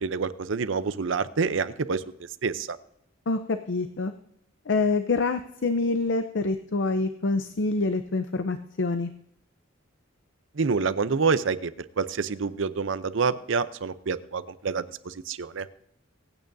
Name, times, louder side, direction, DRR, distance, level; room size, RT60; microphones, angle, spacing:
voice 1, 0.0-2.0 2.4-2.8 10.6-11.7 12.0-15.6, right 5 dB, 70° right, 13 dB, 0.6 m, -27 dB
voice 2, 3.3-4.1 4.7-9.1, left 3 dB, 65° left, 8 dB, 0.6 m, -26 dB
25.0 x 9.0 x 2.7 m, 0.77 s
head